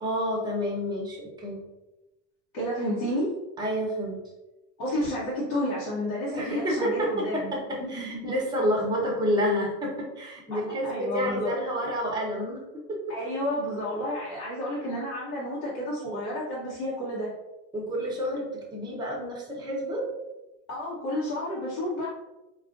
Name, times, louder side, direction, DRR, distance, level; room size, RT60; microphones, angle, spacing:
voice 1, 0.0-1.6 3.6-4.2 6.3-13.1 17.7-20.0, equal, 10° right, -3 dB, 0.8 m, -29 dB
voice 2, 2.5-3.4 4.8-7.5 7.8-8.3 10.5-11.5 13.1-17.3 20.7-22.1, equal, 60° left, -7 dB, 1.1 m, -31 dB
3.9 x 2.4 x 2.5 m, 1.0 s
supercardioid pair, 125°, 44 cm